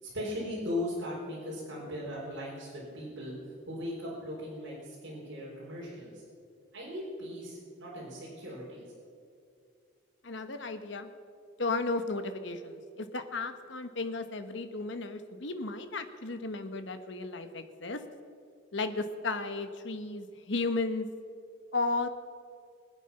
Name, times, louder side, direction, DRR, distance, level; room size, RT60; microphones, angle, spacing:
voice 1, 0.0-3.3 3.7-6.2 6.7-8.8, left 1 dB, 75° right, -7 dB, 4.3 m, -38 dB
voice 2, 10.2-11.1 11.6-18.0 18.7-21.1 21.7-22.1, left 3 dB, 70° left, 8 dB, 1.2 m, -34 dB
24.5 x 8.4 x 5.7 m, 2.4 s
head